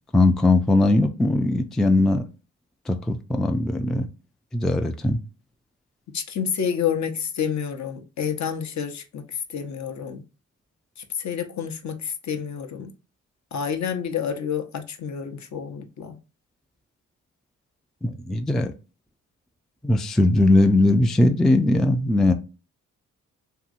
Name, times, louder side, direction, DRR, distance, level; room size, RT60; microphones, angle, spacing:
voice 1, 0.1-2.2 2.9-4.1 4.5-5.2 18.0-18.7 19.8-22.3, left 2 dB, ahead, 0.3 m, -20 dB
voice 2, 6.1-10.2 11.1-12.9 13.5-16.2, left 7 dB, 55° left, 0.6 m, -29 dB
2.7 x 2.7 x 2.5 m
supercardioid pair, 45°, 35 cm